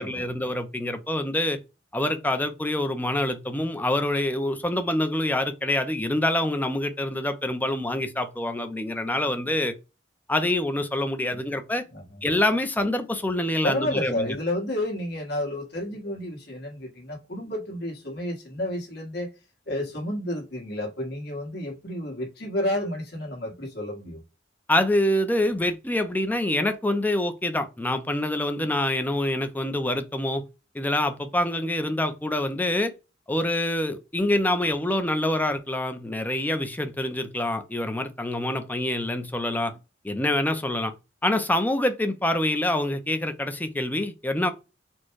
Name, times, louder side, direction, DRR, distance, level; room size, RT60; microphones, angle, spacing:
voice 1, 0.0-1.6 1.9-9.7 10.3-11.8 12.2-14.3 24.7-30.4 30.7-32.9 33.3-39.7 40.0-40.9 41.2-44.5, left 1 dB, 10° left, 0.6 m, -26 dB
voice 2, 13.6-19.3 19.7-24.2, left 1 dB, 60° left, 1.6 m, -31 dB
4.4 x 2.2 x 4.6 m
head